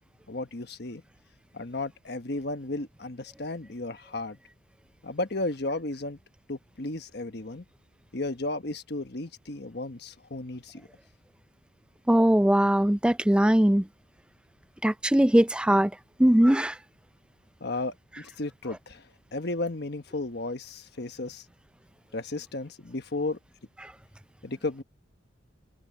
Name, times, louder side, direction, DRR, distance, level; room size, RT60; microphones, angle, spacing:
voice 1, 0.3-1.0 1.5-4.4 5.0-6.2 6.5-7.6 8.1-10.9 17.6-19.0 19.3-21.4 22.1-23.4 24.4-24.8, left 2 dB, 55° left, 1.3 m, -34 dB
voice 2, 12.1-13.8 14.8-15.9 16.2-16.7, equal, 5° right, 0.3 m, -20 dB
head